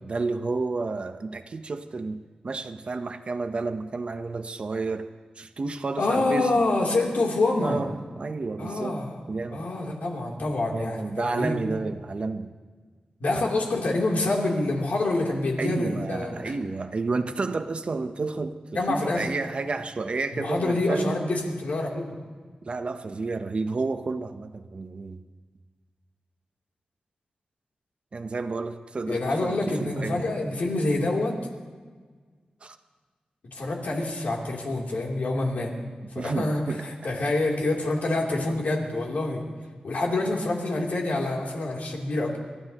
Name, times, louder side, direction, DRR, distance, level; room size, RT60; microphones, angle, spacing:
voice 1, 0.0-5.1 5.4-6.6 7.6-9.0 9.3-9.7 10.7-12.5 15.6-21.2 22.6-25.2 28.1-30.3 32.6-32.8 36.1-36.8 38.5-38.6, right 3 dB, 45° right, 0.9 m, -31 dB
voice 2, 6.0-7.9 8.6-9.2 9.5-11.6 13.2-16.5 18.7-19.3 20.3-22.1 29.1-31.4 33.5-35.7 36.1-39.4 39.8-42.4, left 2 dB, 75° left, 3.2 m, -26 dB
29.0 x 14.5 x 3.0 m
wide cardioid pair, 150°, 3 cm